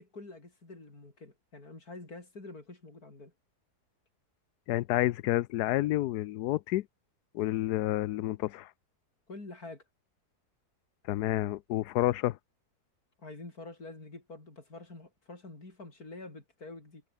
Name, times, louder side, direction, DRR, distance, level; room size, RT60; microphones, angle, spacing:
voice 1, 0.0-3.3 9.3-9.8 13.2-17.0, left 2 dB, 70° left, 5.6 m, -47 dB
voice 2, 4.7-6.9 7.3-8.7 11.1-12.4, left 15 dB, 90° left, 1.2 m, -29 dB
omnidirectional pair, 1.7 m